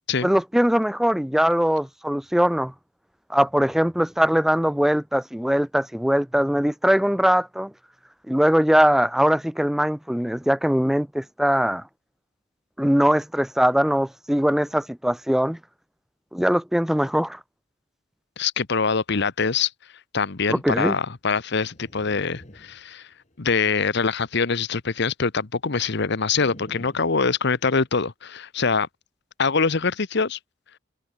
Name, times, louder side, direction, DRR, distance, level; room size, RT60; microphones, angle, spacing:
voice 1, 0.2-2.7 3.3-7.7 8.3-11.8 12.8-15.6 16.3-17.4 20.5-21.0, equal, ahead, 0.3 m, -21 dB
voice 2, 18.4-19.7 20.1-23.1 23.4-28.9 29.4-30.4, left 5 dB, 60° left, 1.0 m, -24 dB
sound 1, 21.6-23.5 26.3-27.9, equal, 35° left, 5.3 m, -48 dB
head